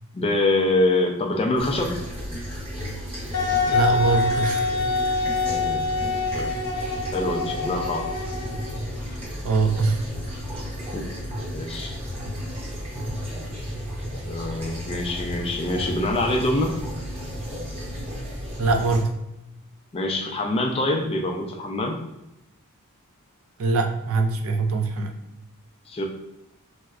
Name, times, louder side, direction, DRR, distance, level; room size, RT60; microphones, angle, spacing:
voice 1, 0.1-1.9 5.5-5.8 6.3-6.5 7.1-8.1 10.9-11.1 11.5-12.0 14.2-16.7 19.9-22.0 25.9-26.0, left 2 dB, 25° left, 3 dB, 0.3 m, -25 dB
sound 1, 1.6-19.0, equal, 25° right, 0.9 m, -33 dB
Wind instrument woodwind instrument, 3.3-8.9, left 3 dB, 90° left, 0.7 m, -25 dB
voice 2, 3.7-4.7 9.4-10.0 18.6-19.1 23.6-25.2, right 3 dB, 65° right, 5 dB, 0.4 m, -23 dB
4.4 x 2.1 x 2.3 m, 0.91 s
head